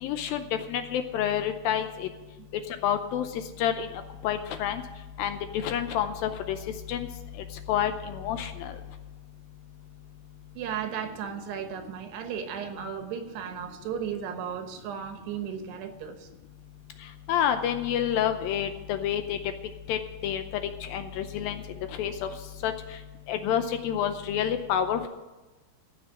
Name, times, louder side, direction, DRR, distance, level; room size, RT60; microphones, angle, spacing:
voice 1, 0.0-2.1 2.8-3.3 3.6-3.9 4.2-4.8 5.2-6.6 6.9-7.1 7.7-8.7 17.3-19.4 19.9-20.4 20.8-21.6 22.0-22.1 22.6-22.7 23.3-25.1, left 9 dB, 75° left, 8 dB, 2.2 m, -28 dB
voice 2, 10.6-16.3, right 8 dB, 90° right, 7 dB, 3.3 m, -35 dB
14.5 x 6.0 x 9.7 m, 1.1 s
omnidirectional pair, 4.6 m